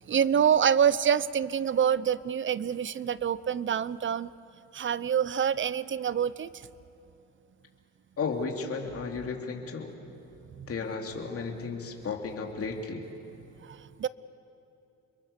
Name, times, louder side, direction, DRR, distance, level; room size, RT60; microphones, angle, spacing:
voice 1, 0.1-4.3 4.7-6.5 10.6-10.7 13.7-14.1, right 8 dB, 40° right, 18 dB, 0.7 m, -26 dB
voice 2, 8.2-9.9 10.7-13.0, left 4 dB, 50° left, 2 dB, 2.9 m, -34 dB
29.5 x 22.5 x 6.8 m, 2.8 s
cardioid pair, 90°, 30 cm